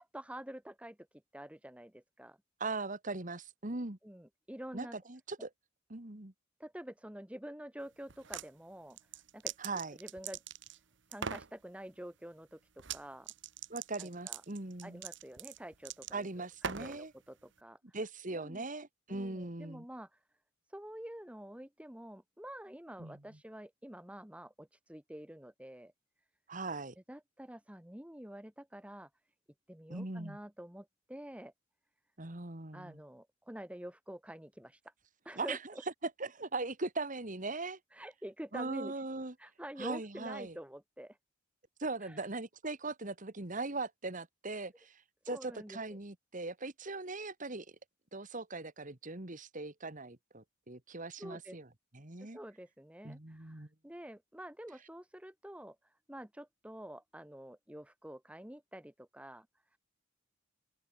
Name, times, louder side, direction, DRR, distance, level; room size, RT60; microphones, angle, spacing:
voice 1, 0.0-2.4 4.0-5.0 6.6-9.5 10.0-10.4 11.1-13.3 14.0-14.4 14.8-18.0 18.3-18.7 19.1-20.2 20.7-25.9 27.1-29.1 29.7-31.5 32.7-34.9 35.2-35.6 37.9-39.0 39.4-41.2 42.0-42.3 44.5-44.7 45.3-46.0 51.2-51.6 52.2-59.5, right 1 dB, 5° right, 1.6 m, -48 dB
voice 2, 2.6-4.0 4.7-5.5 5.9-6.3 9.6-10.0 13.7-15.0 16.1-17.1 17.9-19.8 23.0-23.2 26.5-26.9 29.9-30.4 32.2-33.0 35.4-35.6 36.2-37.8 38.5-39.3 39.8-40.6 41.8-47.7 48.1-51.7 51.9-52.4 53.0-53.7, right 3 dB, 40° right, 2.0 m, -40 dB
sound 1, 8.1-8.5 8.9-10.8 11.1-11.5 12.8-13.0 13.3-17.0, right 7 dB, 65° right, 1.3 m, -41 dB
open air
head